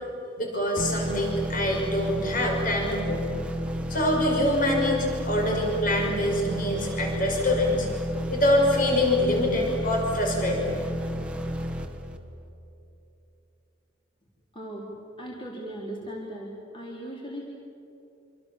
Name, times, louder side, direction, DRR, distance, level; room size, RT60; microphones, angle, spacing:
voice 1, 0.4-3.3 3.9-7.9 8.3-10.7, left 1 dB, 45° left, 0 dB, 5.9 m, -25 dB
sound 1, 0.8-12.5, equal, 5° right, 1.6 m, -32 dB
voice 2, 14.5-14.9 15.2-17.5, right 1 dB, 25° left, -3 dB, 3.9 m, -38 dB
26.5 x 26.5 x 7.4 m, 2.8 s
head